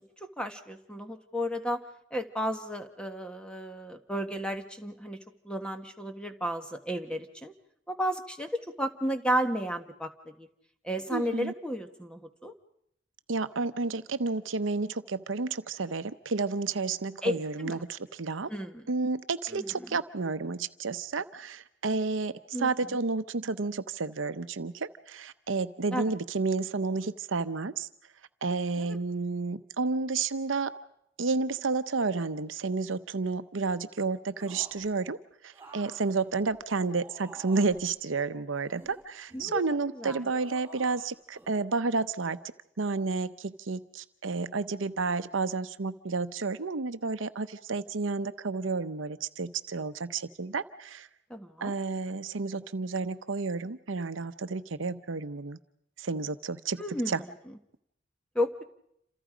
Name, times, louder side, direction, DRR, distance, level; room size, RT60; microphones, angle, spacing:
voice 1, 0.2-1.8 2.1-5.2 5.4-7.5 7.9-10.1 10.4-10.5 10.8-12.5 17.2-17.8 18.5-18.9 19.5-19.6 22.5-23.0 25.9-26.1 28.8-29.0 39.3-39.6 39.9-40.2 51.3-51.7 56.8-57.3 58.3-58.6, equal, 5° left, 6 dB, 1.4 m, -33 dB
voice 2, 11.1-11.5 13.3-18.5 18.9-22.3 22.6-27.9 28.4-30.7 31.2-35.2 35.4-42.4 42.8-51.1 51.6-55.6 56.0-57.2, right 4 dB, 75° right, 12 dB, 0.8 m, -31 dB
sound 1, 34.4-34.9 35.5-37.8 38.5-39.6 40.2-41.1 41.3-41.5, right 3 dB, 10° right, 5.5 m, -51 dB
28.0 x 27.0 x 5.1 m, 0.76 s
head